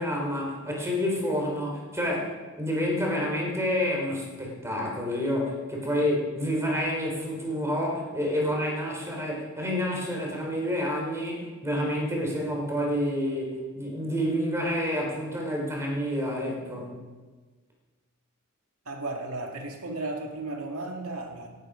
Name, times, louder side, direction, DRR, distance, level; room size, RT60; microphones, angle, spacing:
voice 1, 0.0-17.0, equal, 15° right, -1 dB, 4.0 m, -29 dB
voice 2, 18.9-21.5, right 2 dB, 80° right, 2 dB, 2.1 m, -34 dB
17.5 x 12.0 x 5.1 m, 1.4 s
head